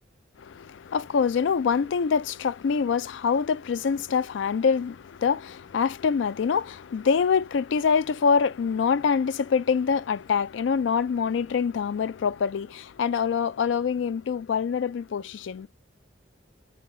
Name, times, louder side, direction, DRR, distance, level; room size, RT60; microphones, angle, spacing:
voice 1, 0.4-15.7, left 6 dB, 70° left, 0.3 m, -25 dB
5.7 x 4.6 x 3.8 m
head